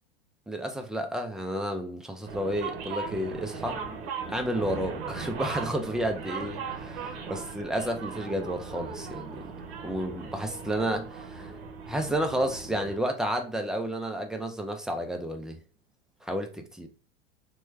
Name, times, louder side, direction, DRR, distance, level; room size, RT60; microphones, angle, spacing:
voice 1, 0.5-3.8 4.3-6.9 7.3-9.4 9.8-11.5 11.9-15.6 16.2-16.9, right 1 dB, ahead, 0.4 m, -31 dB
sound 1, 2.3-13.0, right 5 dB, 60° right, 0.8 m, -38 dB
3.1 x 2.2 x 3.2 m
hypercardioid pair, 90°, 30 cm